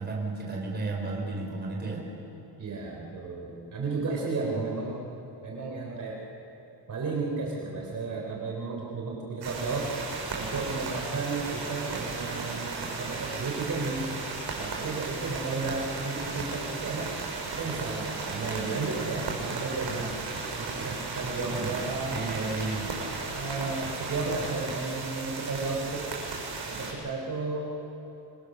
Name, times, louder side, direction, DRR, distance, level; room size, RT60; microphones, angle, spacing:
voice 1, 0.0-2.0 4.5-4.6 21.4-21.7 22.1-22.9, right 3 dB, 25° right, -2 dB, 4.2 m, -33 dB
voice 2, 2.6-5.0 5.4-6.2 6.9-9.9 10.3-14.1 14.5-17.2 17.6-20.2 20.5-22.6 23.2-26.1 26.7-27.7, right 3 dB, 45° right, -2 dB, 3.4 m, -33 dB
sound 1, 9.4-26.9, right 4 dB, 65° right, 6.5 m, -35 dB
26.0 x 23.5 x 6.6 m, 2.9 s
wide cardioid pair, 175°, 43 cm